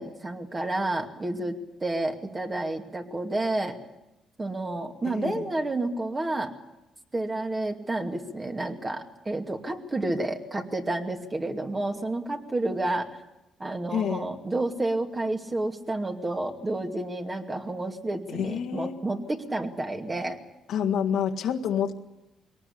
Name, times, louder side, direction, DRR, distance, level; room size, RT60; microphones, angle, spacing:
voice 1, 0.0-3.8 4.4-6.5 7.1-13.1 13.6-20.4, right 2 dB, 25° right, 4 dB, 2.4 m, -30 dB
voice 2, 5.0-5.4 13.9-14.3 18.3-18.9 20.7-21.9, left 8 dB, 80° left, 2 dB, 1.9 m, -28 dB
22.0 x 18.5 x 8.6 m, 0.95 s
cardioid pair, 90°, 0 cm